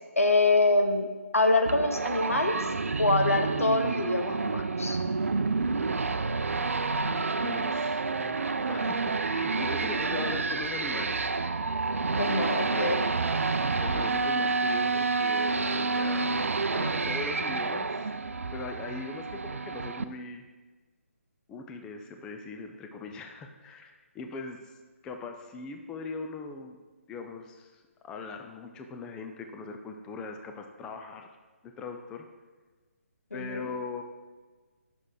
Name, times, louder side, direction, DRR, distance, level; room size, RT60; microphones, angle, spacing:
voice 1, 0.2-2.6 3.0-5.0 12.2-13.1 33.3-33.7, left 2 dB, 75° left, 5 dB, 1.1 m, -25 dB
sound 1, 1.6-20.0, right 4 dB, 70° right, 0.5 m, -29 dB
voice 2, 7.4-11.3 12.6-12.9 13.8-16.3 16.7-18.1 18.5-20.4 21.5-24.7 25.0-26.8 27.1-31.3 31.8-32.2 33.3-34.0, left 4 dB, 10° left, 4 dB, 0.4 m, -40 dB
9.5 x 6.1 x 4.9 m, 1.3 s
figure-of-eight pair, 145°, 8 cm